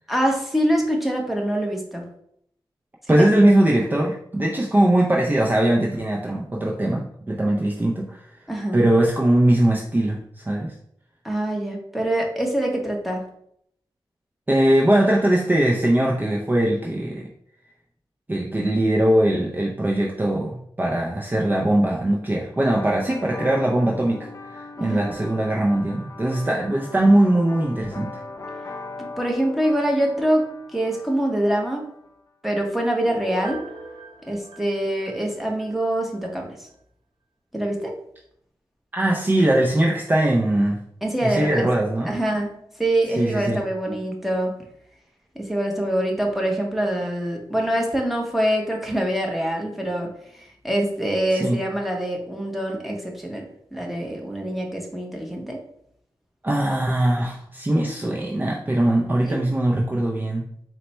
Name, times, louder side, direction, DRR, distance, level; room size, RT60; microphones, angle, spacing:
voice 1, 0.1-2.0 3.1-3.6 8.5-8.8 11.2-13.2 24.8-25.1 29.2-31.8 32.4-33.6 34.3-36.5 37.5-37.9 41.0-41.7 42.0-44.5 45.3-50.1 50.4-55.6 59.2-59.5, right 1 dB, ahead, 0 dB, 0.9 m, -25 dB
voice 2, 3.1-8.4 8.7-10.8 14.5-17.3 18.3-28.1 38.9-40.8 41.2-42.1 43.1-43.6 51.3-51.6 56.4-60.5, right 1 dB, 20° right, -1 dB, 0.5 m, -21 dB
sound 1, 22.5-32.1, left 3 dB, 35° left, 0.4 m, -39 dB
Piano, 33.0-35.7 36.1-36.2, right 2 dB, 65° right, 1.0 m, -40 dB
4.1 x 2.2 x 4.2 m, 0.70 s
cardioid pair, 70°, 9 cm